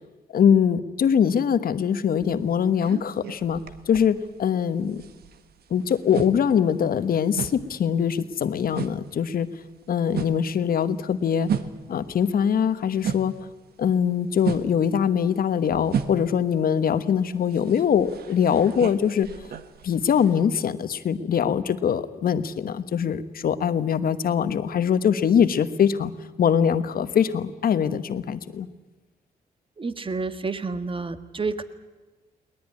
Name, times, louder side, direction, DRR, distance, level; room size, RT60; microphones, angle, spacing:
voice 1, 0.3-5.0 5.7-9.5 9.9-11.5 11.9-13.3 13.8-19.3 19.8-26.1 26.4-28.7, left 8 dB, 65° left, 12 dB, 1.2 m, -23 dB
sound 1, 2.2-4.6 4.9-13.5 13.8-20.5, right 7 dB, 80° right, 1.3 m, -34 dB
voice 2, 29.8-31.6, right 4 dB, 35° right, 11 dB, 1.6 m, -29 dB
21.5 x 19.0 x 9.6 m, 1.2 s
cardioid pair, 75°, 16 cm